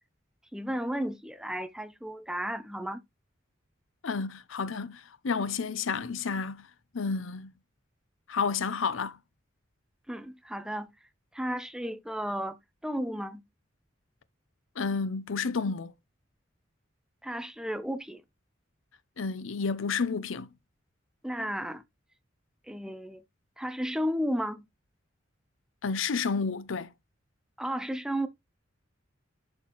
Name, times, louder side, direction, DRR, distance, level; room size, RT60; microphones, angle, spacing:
voice 1, 0.5-3.0 10.1-10.9 11.3-12.6 12.8-13.4 17.2-18.2 21.2-21.8 22.7-23.2 23.6-24.6 27.6-28.3, equal, 5° right, 0.6 m, -33 dB
voice 2, 4.0-6.7 6.9-7.5 8.3-9.2 14.8-15.9 19.2-20.5 25.8-26.9, left 5 dB, 85° left, 0.6 m, -30 dB
11.0 x 4.3 x 3.0 m
head